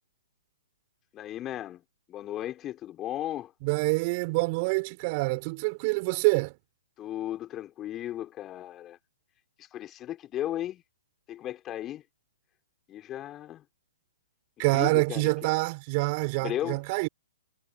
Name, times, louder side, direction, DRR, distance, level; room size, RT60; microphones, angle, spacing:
voice 1, 1.1-1.8 2.1-3.5 7.0-9.0 9.6-10.8 11.3-12.0 12.9-13.6 14.6-15.3 16.3-16.8, left 12 dB, 25° left, 5.0 m, -35 dB
voice 2, 3.6-6.5 14.6-17.1, right 28 dB, 40° right, 4.3 m, -26 dB
figure-of-eight pair, 120°, 0 cm